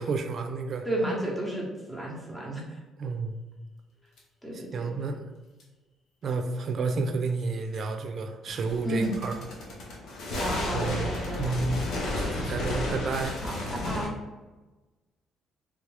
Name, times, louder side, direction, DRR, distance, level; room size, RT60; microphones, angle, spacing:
voice 1, 0.0-0.9 3.0-3.5 4.5-5.2 6.2-9.4 10.7-11.1 11.4-11.8 12.2-13.4, right 4 dB, 55° right, 6 dB, 0.5 m, -31 dB
voice 2, 0.8-2.8 4.4-4.9 8.8-9.1 10.4-11.6 13.4-14.1, right 1 dB, 5° left, -3 dB, 1.1 m, -32 dB
sound 1, 4.2-4.3 5.6-5.7 7.7-7.8 8.5-14.1, left 1 dB, 75° left, 0.8 m, -32 dB
3.5 x 2.3 x 3.3 m, 1.2 s
cardioid pair, 80°, 0 cm